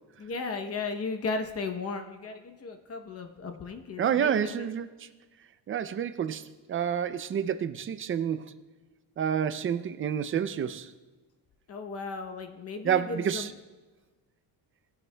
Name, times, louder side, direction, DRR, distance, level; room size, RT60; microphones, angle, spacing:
voice 1, 0.2-4.7 11.7-13.5, left 4 dB, 35° left, 0.8 m, -35 dB
voice 2, 4.0-4.9 5.7-6.4 6.7-8.5 9.2-10.9 12.8-13.5, right 8 dB, 30° right, 0.4 m, -28 dB
19.5 x 11.0 x 2.2 m
cardioid pair, 150°, 40 cm